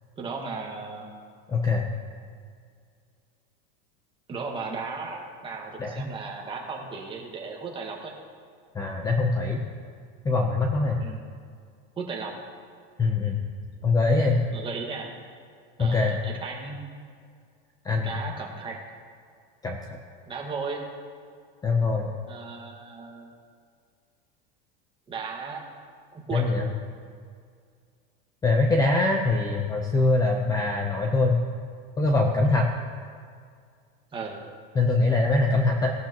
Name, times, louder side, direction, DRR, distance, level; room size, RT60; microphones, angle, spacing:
voice 1, 0.2-1.1 4.3-8.1 11.0-11.3 12.0-12.4 14.5-15.2 15.8-16.8 18.0-18.8 20.2-20.8 22.3-23.3 25.1-25.6 26.1-26.5 34.1-34.4, right 4 dB, 15° right, 0 dB, 1.6 m, -35 dB
voice 2, 1.5-1.9 5.8-6.1 8.7-9.6 10.2-11.0 13.0-13.4 13.8-14.4 15.8-16.2 17.8-18.1 19.6-19.8 21.6-22.1 26.3-26.7 28.4-31.4 32.0-32.7 34.8-35.9, left 3 dB, 10° left, 2 dB, 0.6 m, -23 dB
17.5 x 11.5 x 3.0 m, 2.2 s
supercardioid pair, 155°, 30 cm